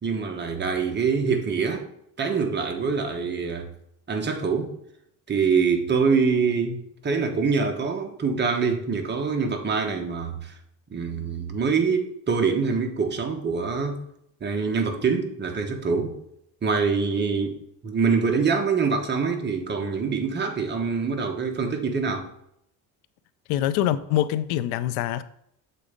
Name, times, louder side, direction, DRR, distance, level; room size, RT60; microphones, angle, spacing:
voice 1, 0.0-1.8 2.2-3.7 4.1-4.7 5.3-10.5 10.9-14.0 14.4-16.1 16.6-17.6 17.8-22.3, right 5 dB, 30° right, 1.2 m, -25 dB
voice 2, 23.5-25.2, left 12 dB, 85° left, 0.5 m, -24 dB
7.5 x 4.2 x 5.1 m
cardioid pair, 125°, 37 cm